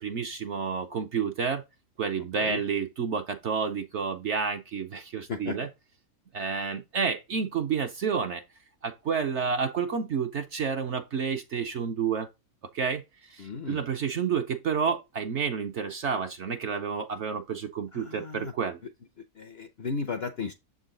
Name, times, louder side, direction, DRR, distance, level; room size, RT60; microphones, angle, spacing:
voice 1, 0.0-1.6 2.0-5.7 6.3-8.4 8.8-12.3 12.7-13.0 13.3-18.8, right 6 dB, 60° right, 0.8 m, -30 dB
voice 2, 2.2-2.6 5.3-5.6 13.4-13.9 17.9-18.5 19.3-20.5, left 4 dB, 55° left, 0.7 m, -35 dB
7.1 x 3.9 x 3.8 m
omnidirectional pair, 1.7 m